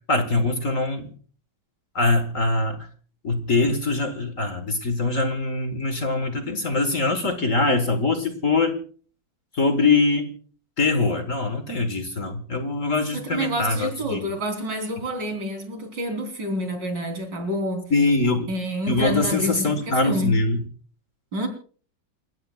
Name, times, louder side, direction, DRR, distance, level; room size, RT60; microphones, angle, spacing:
voice 1, 0.1-1.1 2.0-2.9 3.2-8.8 9.5-10.3 10.8-14.3 17.9-18.5 18.9-20.6, left 3 dB, 45° left, 7 dB, 1.7 m, -23 dB
voice 2, 13.1-17.8 18.5-20.3 21.3-21.5, equal, 65° right, 3 dB, 4.2 m, -28 dB
29.0 x 14.5 x 2.4 m, 0.43 s
omnidirectional pair, 2.1 m